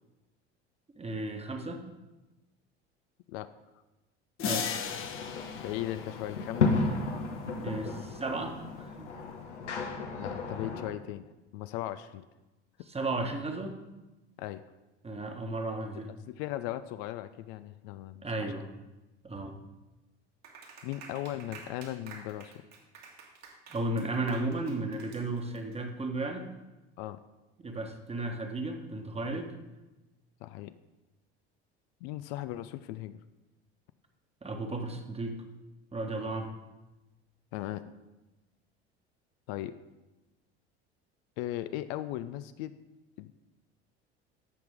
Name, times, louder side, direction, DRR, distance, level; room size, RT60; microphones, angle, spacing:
voice 1, 0.9-1.9 4.4-4.7 7.5-9.1 12.9-13.8 15.0-16.1 18.2-18.7 19.2-19.6 23.7-26.5 27.6-29.5 34.4-35.4 35.9-36.5, right 2 dB, 20° right, 4 dB, 1.3 m, -34 dB
sound 1, 4.4-7.2, left 7 dB, 40° left, 1.0 m, -37 dB
sound 2, 4.8-10.9, left 4 dB, 90° left, 1.0 m, -33 dB
voice 2, 5.6-6.9 10.1-11.2 11.5-12.3 14.4-14.6 16.3-18.5 20.8-22.5 27.0-27.2 30.4-30.7 32.0-33.2 37.5-37.8 39.5-39.8 41.4-42.7 43.2-43.4, left 14 dB, 60° left, 12 dB, 0.5 m, -37 dB
Clapping, 20.4-25.7, right 4 dB, 55° right, 2.0 m, -50 dB
14.0 x 5.8 x 3.6 m, 1.1 s
hypercardioid pair, 70°, 34 cm